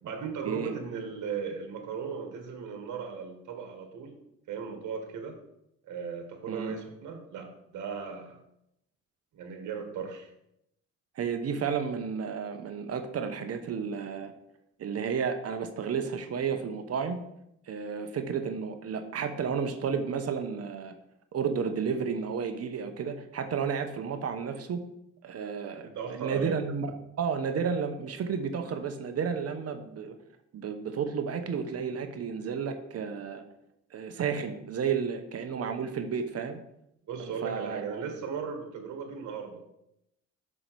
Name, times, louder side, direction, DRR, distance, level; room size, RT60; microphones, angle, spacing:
voice 1, 0.0-4.1 4.5-5.4 5.8-8.4 9.3-10.3 25.8-26.5 37.1-39.7, right 6 dB, 75° right, 5 dB, 1.5 m, -37 dB
voice 2, 11.2-14.3 14.8-17.2 17.7-20.9 21.3-24.8 25.2-30.2 30.5-33.4 33.9-36.6 37.2-38.0, right 6 dB, 55° right, 8 dB, 0.9 m, -32 dB
6.1 x 5.4 x 4.6 m, 0.80 s
cardioid pair, 90°, 30 cm